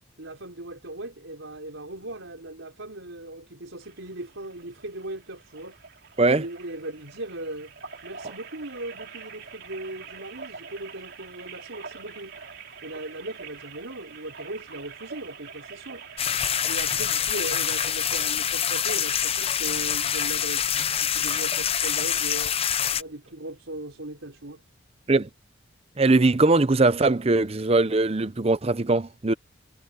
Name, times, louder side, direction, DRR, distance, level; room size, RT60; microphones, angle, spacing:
voice 1, 0.2-5.8 6.4-7.7 8.0-12.4 12.8-16.0 16.7-20.7 21.0-22.6 23.0-24.6, right 1 dB, 75° right, 4.4 m, -38 dB
sound 1, 3.8-18.3, right 5 dB, 55° right, 3.8 m, -45 dB
sound 2, 16.2-23.0, left 9 dB, 30° left, 0.6 m, -26 dB
voice 2, 26.0-29.3, right 2 dB, 30° right, 0.6 m, -21 dB
head